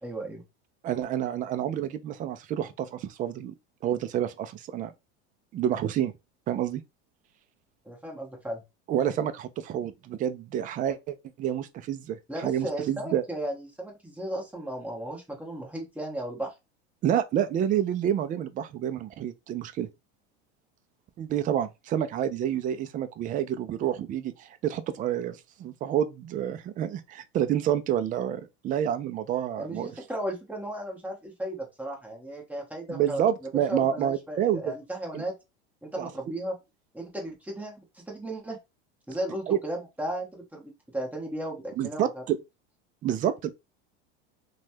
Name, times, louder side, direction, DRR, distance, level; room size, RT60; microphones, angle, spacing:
voice 1, 0.0-0.4 7.8-8.6 12.3-16.5 29.6-33.2 33.5-35.3 35.8-36.6 36.9-38.6 39.1-42.2, right 1 dB, 5° right, 1.1 m, -35 dB
voice 2, 0.8-3.5 3.8-4.9 5.5-6.1 6.5-6.8 8.9-13.2 17.0-19.9 21.2-29.9 32.9-34.7 35.1-35.2 36.0-36.1 39.5-39.6 41.8-42.4 43.0-43.5, right 10 dB, 25° right, 0.3 m, -28 dB
3.1 x 2.3 x 2.6 m
supercardioid pair, 115°, 33 cm